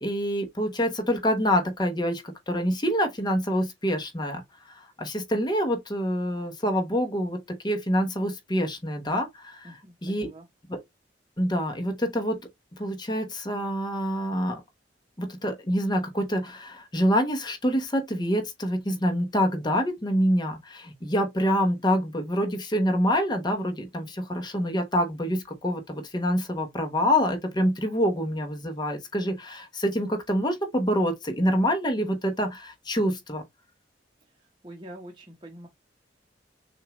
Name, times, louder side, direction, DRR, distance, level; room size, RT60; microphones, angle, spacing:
voice 1, 0.0-4.4 4.7-7.4 7.6-9.7 10.0-10.3 10.7-10.8 11.4-12.4 12.8-14.6 15.2-33.4, equal, 25° left, 1.0 m, -26 dB
voice 2, 9.6-10.5 34.6-35.7, right 1 dB, 25° right, 0.9 m, -45 dB
6.3 x 2.5 x 3.0 m
head